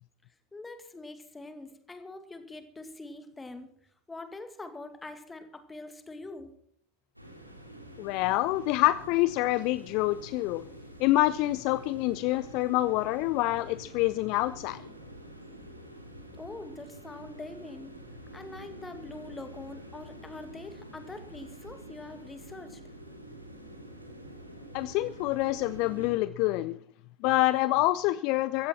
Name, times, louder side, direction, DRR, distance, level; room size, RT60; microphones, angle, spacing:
voice 1, 0.5-3.7 4.1-6.5 16.4-17.9 18.3-22.8, left 2 dB, 10° left, 8 dB, 2.2 m, -44 dB
sound 1, 7.2-26.1, right 1 dB, 90° right, 2.9 m, -47 dB
voice 2, 8.0-10.6 11.0-14.8 24.7-26.8 27.2-28.7, left 17 dB, 45° left, 17 dB, 0.5 m, -26 dB
17.0 x 15.0 x 4.5 m, 0.64 s
figure-of-eight pair, 90°, 0 cm